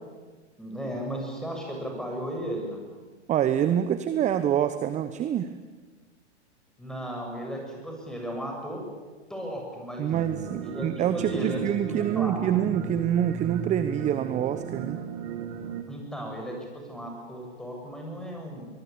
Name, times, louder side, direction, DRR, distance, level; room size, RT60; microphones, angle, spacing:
voice 1, 0.6-2.9 6.8-8.8 9.3-10.1 10.6-11.6 11.9-12.8 15.9-18.6, equal, ahead, 0 dB, 7.3 m, -35 dB
voice 2, 3.3-5.5 10.0-15.0, right 10 dB, 20° right, 11 dB, 1.0 m, -26 dB
sound 1, 10.1-15.8, right 7 dB, 45° right, 2.5 m, -35 dB
23.5 x 20.5 x 8.6 m, 1.3 s
hypercardioid pair, 110°, 36 cm